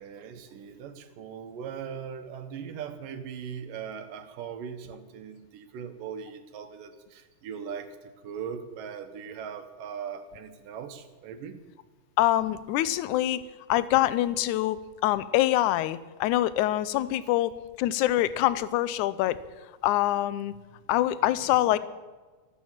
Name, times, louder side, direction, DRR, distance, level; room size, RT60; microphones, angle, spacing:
voice 1, 0.0-7.9 8.2-11.6, right 7 dB, 75° right, 9 dB, 2.8 m, -39 dB
voice 2, 12.2-13.4 13.7-19.4 19.8-20.5 20.9-21.8, left 14 dB, 75° left, 16 dB, 2.0 m, -25 dB
14.0 x 14.0 x 7.3 m, 1.3 s
omnidirectional pair, 3.9 m